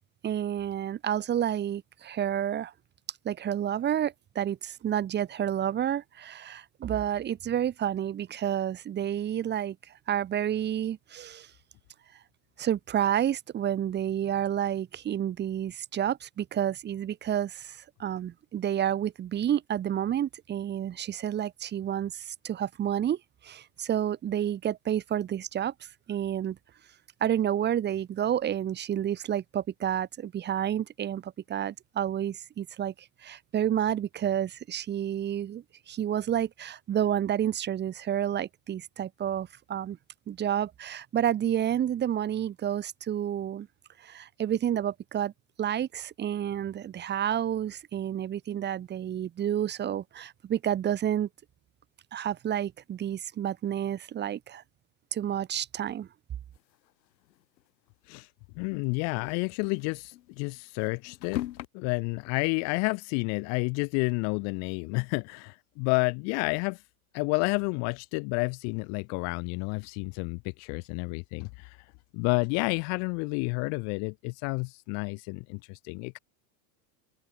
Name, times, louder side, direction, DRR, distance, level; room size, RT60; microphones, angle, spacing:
voice 1, 0.2-2.7 3.2-9.7 10.1-11.5 12.6-23.2 23.4-25.7 26.1-26.6 27.2-40.0 40.3-43.7 44.0-45.3 45.6-51.3 52.1-54.6 55.1-56.1, right 10 dB, 20° right, 1.7 m, -30 dB
sound 1, 56.5-57.7 58.0-58.1 58.4-58.5 59.1-61.7, left 14 dB, 90° left, 7.2 m, -40 dB
voice 2, 58.6-61.4 61.7-66.8 67.1-76.2, left 36 dB, 35° left, 0.6 m, -30 dB
supercardioid pair, 155°, 50 cm